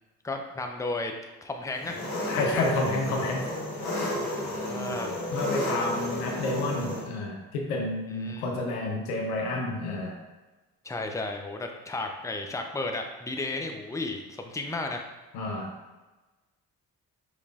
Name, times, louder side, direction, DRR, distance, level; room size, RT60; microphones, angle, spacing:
voice 1, 0.2-1.1 1.4-2.0 4.5-5.1 8.2-8.5 10.8-15.0, left 2 dB, 10° left, 3 dB, 0.6 m, -33 dB
Engine, 1.8-7.0, left 1 dB, 60° left, 1.3 m, -32 dB
voice 2, 2.3-3.5 5.3-10.2 15.3-15.7, left 2 dB, 85° left, 1 dB, 0.7 m, -29 dB
5.4 x 3.2 x 2.4 m, 1.2 s
hypercardioid pair, 45°, 42 cm